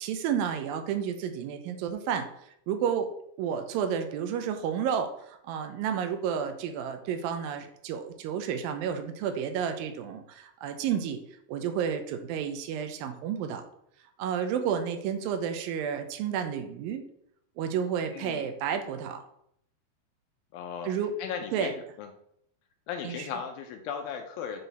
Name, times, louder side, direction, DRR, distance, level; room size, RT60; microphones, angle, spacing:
voice 1, 0.0-2.3 2.7-3.1 3.4-11.2 11.5-13.6 14.2-17.0 17.6-19.2 20.8-21.1 21.5-21.7 23.0-23.3, right 8 dB, 85° right, 7 dB, 2.1 m, -31 dB
voice 2, 18.1-18.5 20.5-20.9 21.2-22.1 22.9-24.6, left 7 dB, 85° left, 4 dB, 2.1 m, -37 dB
9.5 x 4.0 x 4.0 m, 0.73 s
omnidirectional pair, 4.8 m